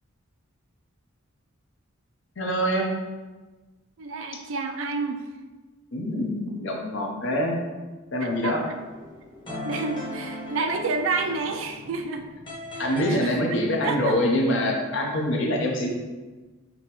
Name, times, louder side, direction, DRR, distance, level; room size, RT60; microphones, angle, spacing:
voice 1, 2.4-2.9 5.9-7.6 8.1-8.6 12.8-15.9, equal, 60° left, 0 dB, 0.7 m, -25 dB
voice 2, 4.0-5.2 8.2-8.5 9.6-12.3 12.7-12.8 13.1-13.4 13.8-14.2, right 4 dB, 65° right, 5 dB, 0.4 m, -29 dB
sound 1, 8.2-13.2, left 1 dB, 20° left, 0.9 m, -38 dB
5.2 x 2.9 x 3.0 m, 1.3 s
head